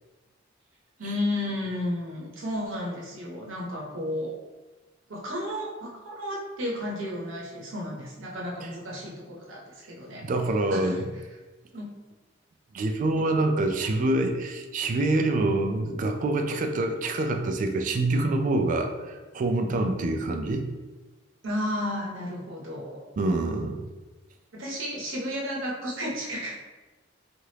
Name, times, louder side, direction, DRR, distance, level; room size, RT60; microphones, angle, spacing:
voice 1, 1.0-4.3 5.1-9.6 9.9-10.2 10.7-11.0 11.7-11.9 21.4-23.0 24.5-26.7, left 1 dB, 85° right, -3 dB, 0.8 m, -32 dB
voice 2, 10.2-11.0 12.7-20.7 23.2-23.9, right 2 dB, 40° right, 5 dB, 0.3 m, -26 dB
3.2 x 2.4 x 2.8 m, 1.2 s
head